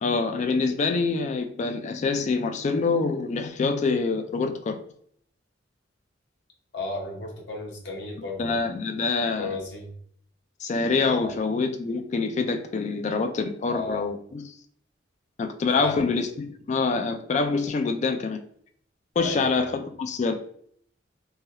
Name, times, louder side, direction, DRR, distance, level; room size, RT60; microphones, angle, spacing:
voice 1, 0.0-4.8 8.4-9.6 10.6-14.5 15.4-18.4 19.2-20.4, left 4 dB, 40° left, 6 dB, 0.3 m, -26 dB
voice 2, 6.7-8.6 9.4-9.9 11.2-11.3 13.7-14.1 15.7-16.1 19.2-19.7, left 3 dB, 65° left, -1 dB, 0.9 m, -34 dB
3.1 x 2.3 x 2.7 m, 0.63 s
head